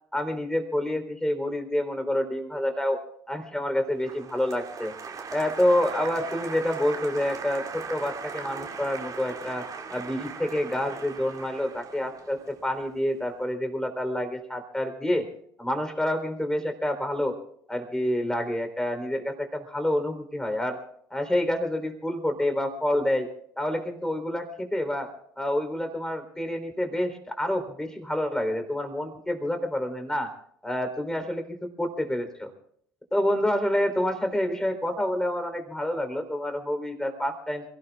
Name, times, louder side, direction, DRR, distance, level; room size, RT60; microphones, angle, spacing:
voice 1, 0.1-3.0 3.3-4.9 5.3-9.7 9.9-15.3 15.6-17.3 17.7-20.8 21.1-23.3 23.6-25.1 25.4-30.3 30.6-32.5 33.1-37.7, left 1 dB, 5° left, 7 dB, 3.7 m, -28 dB
Applause, 4.0-13.1, right 5 dB, 35° right, 2.5 m, -39 dB
28.5 x 17.0 x 2.4 m, 0.67 s
figure-of-eight pair, 60°, 11 cm